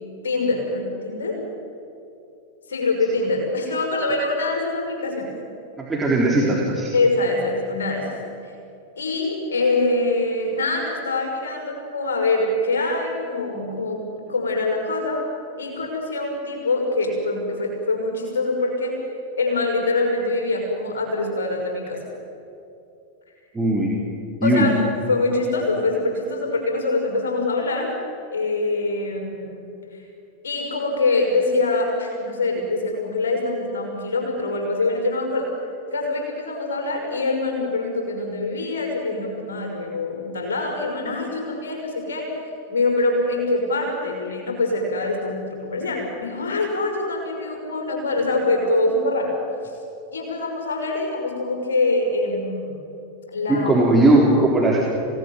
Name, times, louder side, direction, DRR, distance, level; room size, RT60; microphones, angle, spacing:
voice 1, 0.2-1.4 2.7-5.3 6.9-8.1 9.0-15.2 15.6-19.0 19.4-22.0 24.4-24.8 25.1-28.0 28.3-29.8 30.4-35.5 35.9-42.3 42.7-49.3 50.1-52.8 53.3-53.7, left 2 dB, 65° left, 1 dB, 5.8 m, -24 dB
voice 2, 5.8-6.9 23.5-23.9 24.4-24.7 53.5-54.8, right 1 dB, 10° right, -4 dB, 4.1 m, -18 dB
27.0 x 18.0 x 9.5 m, 2.6 s
figure-of-eight pair, 90°, 0 cm